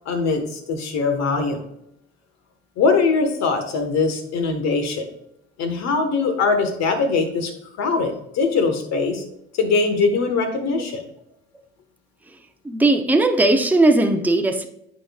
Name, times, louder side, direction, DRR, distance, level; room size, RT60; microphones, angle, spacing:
voice 1, 0.0-1.6 2.8-5.1 5.6-7.5 7.8-9.2 9.6-11.0, left 4 dB, 60° left, 6 dB, 1.5 m, -21 dB
voice 2, 12.6-14.7, right 2 dB, 5° right, 5 dB, 0.8 m, -18 dB
9.7 x 4.3 x 2.4 m, 0.79 s
hypercardioid pair, 65°, 31 cm